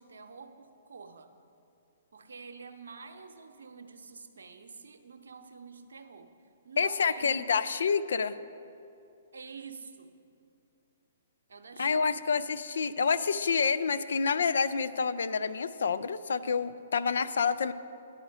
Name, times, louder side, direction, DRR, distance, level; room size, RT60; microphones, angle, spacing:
voice 1, 0.0-1.3 2.1-6.3 6.6-7.7 9.3-10.1 11.5-12.3, right 5 dB, 75° right, 7 dB, 0.6 m, -47 dB
voice 2, 6.8-8.4 11.8-17.7, left 5 dB, 70° left, 13 dB, 0.3 m, -28 dB
10.0 x 5.0 x 6.4 m, 2.6 s
figure-of-eight pair, 125°, 0 cm